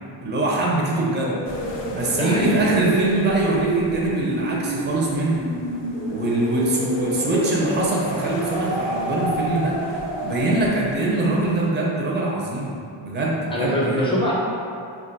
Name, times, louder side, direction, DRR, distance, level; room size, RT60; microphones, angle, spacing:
voice 1, 0.2-1.4 1.9-5.4 6.1-14.0, right 2 dB, 25° right, -4 dB, 0.5 m, -23 dB
sound 1, 1.2-10.7, right 2 dB, 80° right, 0.6 m, -29 dB
sound 2, 1.4-11.7, left 2 dB, 60° left, 0.5 m, -39 dB
voice 2, 2.1-2.7 13.5-14.3, equal, 10° left, -6 dB, 0.7 m, -23 dB
2.4 x 2.3 x 3.9 m, 2.5 s
wide cardioid pair, 70°, 48 cm